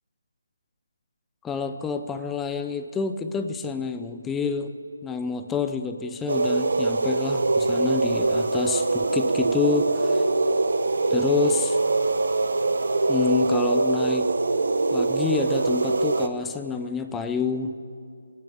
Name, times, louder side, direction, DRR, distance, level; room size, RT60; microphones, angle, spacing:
voice 1, 1.4-4.7 5.0-10.2 11.1-11.8 13.1-14.3 14.9-17.8, left 5 dB, 5° left, 8 dB, 0.3 m, -28 dB
sound 1, 6.3-16.3, right 3 dB, 50° right, 0.9 m, -23 dB
17.5 x 9.7 x 8.5 m, 2.3 s
figure-of-eight pair, 175°, 0 cm